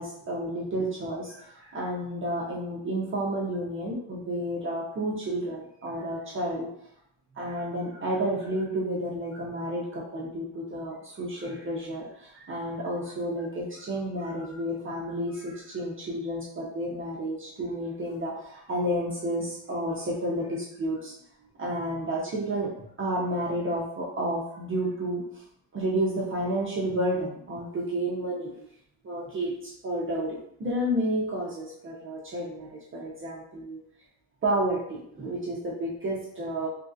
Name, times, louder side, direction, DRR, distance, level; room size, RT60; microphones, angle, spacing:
voice 1, 0.0-6.7 7.4-21.1 21.6-22.7 23.0-25.2 25.7-28.5 29.0-33.8 34.4-36.7, right 1 dB, 30° right, -4 dB, 0.4 m, -31 dB
3.1 x 2.4 x 2.5 m, 0.72 s
cardioid pair, 170°, 42 cm